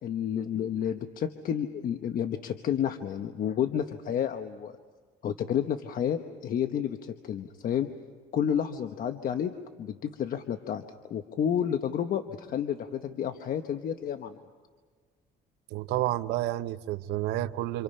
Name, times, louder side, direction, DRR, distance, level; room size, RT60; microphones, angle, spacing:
voice 1, 0.0-4.7 5.2-7.9 8.3-9.5 9.8-14.3, left 9 dB, 60° left, 1.2 m, -30 dB
voice 2, 15.7-17.8, right 15 dB, 90° right, 0.8 m, -30 dB
28.5 x 27.5 x 5.6 m
cardioid pair, 110°, 17 cm